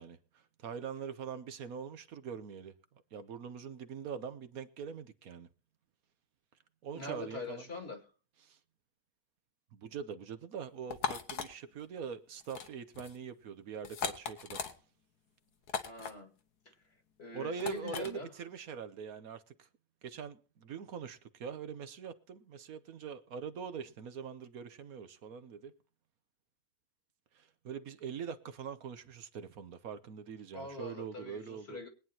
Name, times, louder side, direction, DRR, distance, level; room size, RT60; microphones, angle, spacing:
voice 1, 0.0-2.7 3.1-5.5 6.8-7.6 8.4-8.6 9.7-14.6 17.3-19.7 20.0-25.7 27.3-31.8, right 7 dB, 70° right, 1.3 m, -43 dB
voice 2, 6.9-8.0 15.8-16.3 17.2-18.3 30.5-31.9, left 2 dB, 40° left, 2.4 m, -43 dB
sound 1, 10.9-11.5 12.4-12.7 12.9-13.2 13.8-14.7 15.7-16.1 17.6-18.1, left 7 dB, 85° left, 1.8 m, -37 dB
22.5 x 9.3 x 2.8 m
omnidirectional pair, 1.6 m